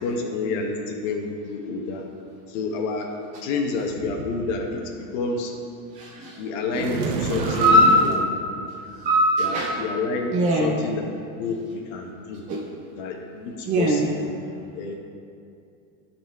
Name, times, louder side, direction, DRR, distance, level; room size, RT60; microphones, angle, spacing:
voice 1, 0.0-2.0 2.5-3.1 3.4-4.8 5.1-5.5 6.4-8.7 9.4-11.1 11.4-12.4 13.0-14.3 14.7-14.9, left 3 dB, 65° left, 3 dB, 1.1 m, -29 dB
voice 2, 5.9-6.4 7.4-8.1 8.9-9.8 10.3-10.8 12.5-12.7 13.6-14.1, equal, 20° right, -2 dB, 0.3 m, -20 dB
sound 1, 6.7-8.3, right 5 dB, 75° right, 0.9 m, -27 dB
12.0 x 4.3 x 3.5 m, 2.5 s
supercardioid pair, 150°, 41 cm